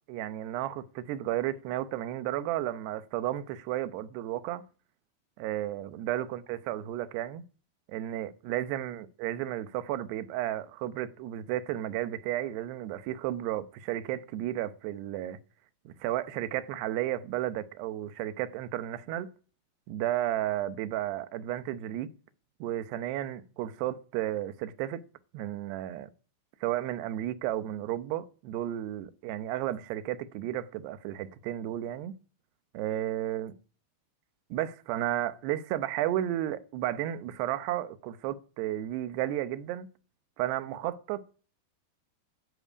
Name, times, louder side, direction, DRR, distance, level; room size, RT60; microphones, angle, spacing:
voice 1, 0.1-4.6 5.4-7.4 7.9-15.4 15.9-19.3 19.9-22.1 22.6-25.0 25.3-26.1 26.6-32.1 32.7-33.5 34.5-39.9 40.4-41.4, right 13 dB, 90° right, 3.0 m, -33 dB
12.5 x 11.0 x 8.4 m
omnidirectional pair, 4.6 m